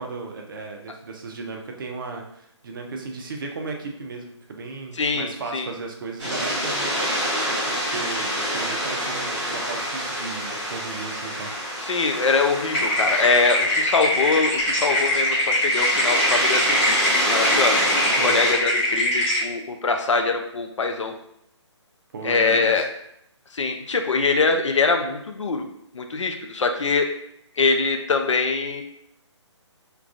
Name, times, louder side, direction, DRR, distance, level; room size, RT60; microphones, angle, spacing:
voice 1, 0.0-11.5 18.2-18.3 22.1-22.8, right 3 dB, 45° right, 2 dB, 0.4 m, -35 dB
voice 2, 5.0-5.7 11.8-21.1 22.2-22.8 23.5-25.7 25.9-27.1 27.6-28.8, left 4 dB, 80° left, 5 dB, 0.4 m, -23 dB
sound 1, 6.2-18.5, equal, 15° right, 0.8 m, -27 dB
sound 2, 12.7-19.4, left 1 dB, 20° left, 0.6 m, -23 dB
2.2 x 2.2 x 2.5 m, 0.76 s
figure-of-eight pair, 145°, 16 cm